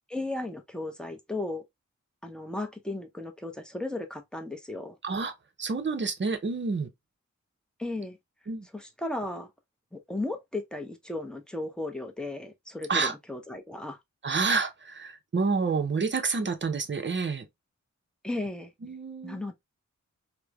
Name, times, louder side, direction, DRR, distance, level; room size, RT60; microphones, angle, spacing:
voice 1, 0.1-1.6 2.2-4.9 7.8-8.2 8.7-9.5 9.9-14.0 18.2-18.7 19.2-19.5, left 2 dB, 5° left, 0.6 m, -35 dB
voice 2, 5.0-5.3 5.6-6.9 8.5-8.7 12.9-13.1 14.2-17.5 18.8-19.5, right 4 dB, 40° right, 0.6 m, -28 dB
3.1 x 2.0 x 2.2 m
wide cardioid pair, 70°, 31 cm